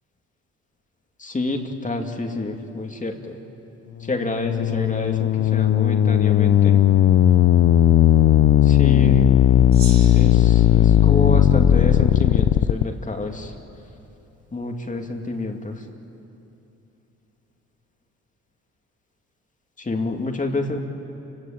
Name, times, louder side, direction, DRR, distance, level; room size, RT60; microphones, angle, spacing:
voice 1, 1.2-3.4 4.1-6.8 8.6-9.2 10.1-13.5 14.5-15.8 19.8-20.8, left 2 dB, 25° left, 4 dB, 2.4 m, -28 dB
sound 1, 4.1-12.8, left 11 dB, 55° left, 0.7 m, -16 dB
Gong, 9.7-12.4, right 3 dB, 50° right, 6.8 m, -41 dB
29.5 x 17.0 x 8.7 m, 2.9 s
cardioid pair, 90°, 30 cm